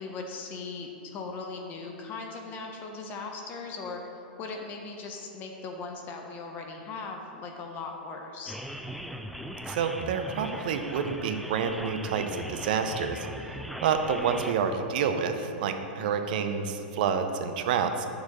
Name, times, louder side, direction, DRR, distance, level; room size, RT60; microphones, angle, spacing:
voice 1, 0.0-4.0 4.4-8.6 16.0-16.5, left 4 dB, 35° left, 2 dB, 0.8 m, -39 dB
sound 1, 8.5-14.5, equal, ahead, 0.3 m, -39 dB
voice 2, 9.7-13.3 13.8-18.1, right 6 dB, 60° right, 7 dB, 0.6 m, -28 dB
9.2 x 6.6 x 3.0 m, 2.7 s
hypercardioid pair, 105°, 5 cm